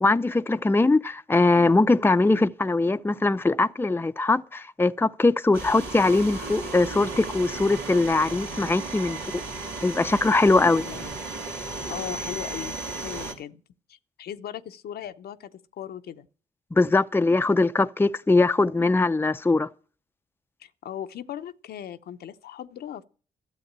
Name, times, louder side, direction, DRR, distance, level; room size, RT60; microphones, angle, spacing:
voice 1, 0.0-9.4 9.8-10.8 16.7-19.7, left 3 dB, 15° left, 0.6 m, -21 dB
sound 1, 5.5-13.3, right 3 dB, 85° right, 2.4 m, -35 dB
voice 2, 10.7-11.1 11.9-13.6 13.9-16.3 20.6-23.0, left 10 dB, 70° left, 0.8 m, -38 dB
13.0 x 7.9 x 7.4 m
supercardioid pair, 45°, 17 cm